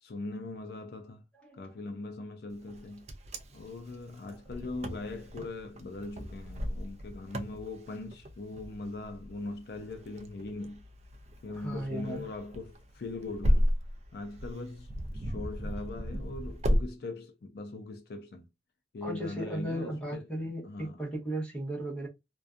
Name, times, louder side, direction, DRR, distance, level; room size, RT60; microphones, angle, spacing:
voice 1, 0.0-1.2 1.5-3.1 3.5-10.8 11.4-13.7 14.1-18.5 18.9-20.3 20.6-21.0, left 2 dB, 60° left, 0.4 m, -41 dB
Wind, 2.7-16.9, equal, 40° right, 0.4 m, -34 dB
voice 2, 11.5-12.3 19.0-22.1, right 1 dB, 5° left, 1.0 m, -36 dB
2.5 x 2.2 x 2.4 m
head